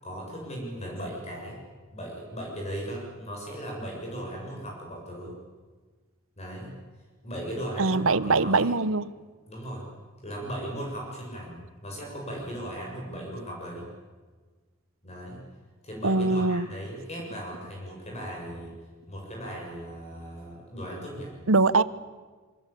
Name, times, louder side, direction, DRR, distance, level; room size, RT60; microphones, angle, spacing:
voice 1, 0.0-1.6 1.9-5.4 6.4-6.8 7.2-8.8 9.5-9.9 10.2-13.9 15.0-15.5 15.8-18.7 19.1-21.3, equal, 30° left, -1 dB, 7.2 m, -37 dB
voice 2, 7.8-9.1 16.0-16.7 21.5-21.8, right 3 dB, 75° right, 17 dB, 1.0 m, -22 dB
26.5 x 25.0 x 8.5 m, 1.4 s
head